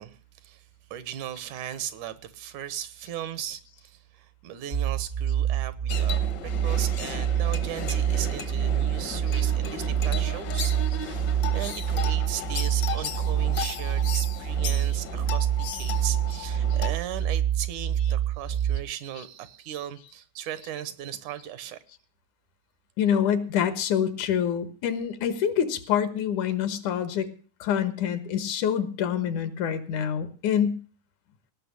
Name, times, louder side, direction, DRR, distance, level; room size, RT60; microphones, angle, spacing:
voice 1, 0.0-21.8, right 11 dB, 90° right, 2.5 m, -37 dB
sound 1, 4.7-18.8, right 10 dB, 60° right, 0.6 m, -26 dB
sound 2, 5.9-16.9, left 7 dB, 65° left, 1.1 m, -36 dB
voice 2, 23.0-27.3 27.6-30.8, left 8 dB, 85° left, 2.8 m, -26 dB
18.0 x 6.1 x 8.4 m
omnidirectional pair, 3.4 m